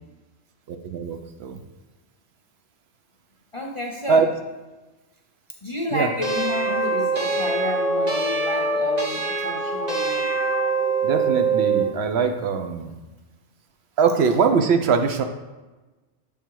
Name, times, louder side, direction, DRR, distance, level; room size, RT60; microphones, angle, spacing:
voice 1, 0.7-1.6 4.1-4.3 5.9-6.1 11.0-12.9 14.0-15.2, right 5 dB, 70° right, 7 dB, 0.8 m, -22 dB
voice 2, 3.5-4.2 5.6-10.3, left 2 dB, 40° left, 0 dB, 0.5 m, -31 dB
sound 1, 6.2-11.9, right 3 dB, 40° right, 1.1 m, -23 dB
7.2 x 3.5 x 4.5 m, 1.2 s
omnidirectional pair, 1.2 m